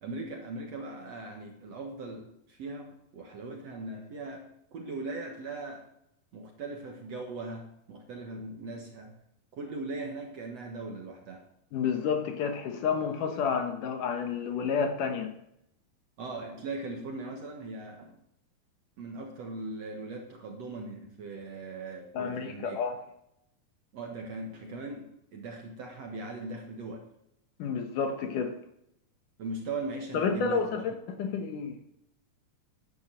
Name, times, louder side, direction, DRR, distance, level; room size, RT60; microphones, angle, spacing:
voice 1, 0.0-5.9 6.3-9.2 9.5-11.5 16.2-18.2 19.0-22.8 23.9-27.1 29.4-30.8, right 2 dB, 55° right, 2 dB, 2.1 m, -39 dB
voice 2, 11.7-15.3 22.1-23.0 27.6-28.6 30.1-30.9 31.2-31.8, left 6 dB, 65° left, 6 dB, 2.5 m, -30 dB
11.5 x 10.0 x 7.7 m, 0.78 s
omnidirectional pair, 4.4 m